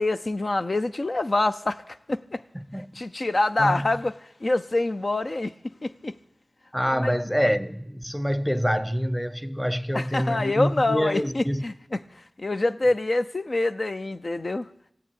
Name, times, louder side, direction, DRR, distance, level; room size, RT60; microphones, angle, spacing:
voice 1, 0.0-2.4 2.9-6.2 6.9-7.1 9.9-14.7, left 2 dB, 60° left, 0.6 m, -26 dB
voice 2, 2.5-3.0 3.6-3.9 6.7-11.6, equal, 5° left, 0.9 m, -26 dB
15.0 x 8.6 x 9.7 m
cardioid pair, 40°, 0 cm